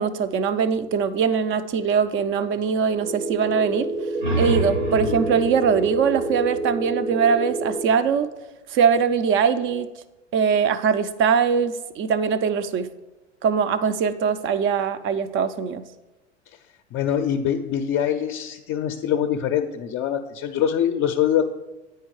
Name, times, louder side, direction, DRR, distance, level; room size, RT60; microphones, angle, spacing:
voice 1, 0.0-3.9 4.4-8.3 8.7-9.9 10.3-12.9 13.4-15.8, right 6 dB, 35° right, 13 dB, 0.5 m, -22 dB
sound 1, 2.9-7.9, right 2 dB, 70° right, 1.2 m, -28 dB
sound 2, 3.9-7.4, right 1 dB, 90° right, 2.1 m, -29 dB
voice 2, 16.9-21.5, left 9 dB, 35° left, 4 dB, 0.5 m, -24 dB
8.7 x 4.6 x 4.7 m, 1.1 s
hypercardioid pair, 95°, 36 cm